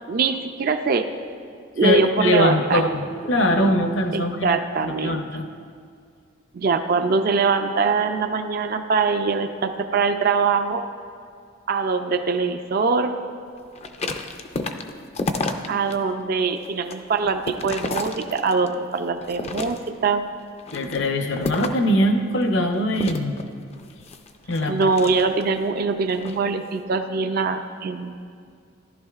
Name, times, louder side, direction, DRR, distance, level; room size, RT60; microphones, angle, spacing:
voice 1, 0.1-1.1 1.8-2.8 4.1-5.2 6.5-10.8 11.7-13.2 15.7-20.2 24.7-28.1, right 4 dB, 45° right, 7 dB, 0.3 m, -23 dB
voice 2, 1.8-5.4 20.7-23.4 24.5-24.9, left 1 dB, 60° left, 5 dB, 0.8 m, -22 dB
sound 1, 13.7-16.0 16.4-18.7 19.2-20.1 20.6-21.9 22.9-25.6 26.1-26.4, left 3 dB, 30° left, 0.4 m, -31 dB
14.5 x 11.0 x 2.4 m, 2.2 s
head